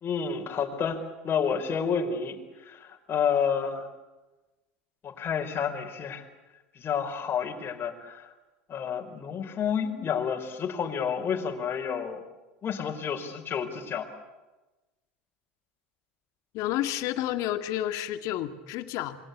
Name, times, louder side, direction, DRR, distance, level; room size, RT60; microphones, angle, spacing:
voice 1, 0.0-3.9 5.0-6.2 6.7-8.3 8.7-12.2 12.6-14.2, left 7 dB, 35° left, 2 dB, 4.6 m, -30 dB
voice 2, 16.5-19.2, left 13 dB, 55° left, 8 dB, 2.2 m, -30 dB
27.5 x 23.5 x 8.5 m, 1.1 s
hypercardioid pair, 80°, 6 cm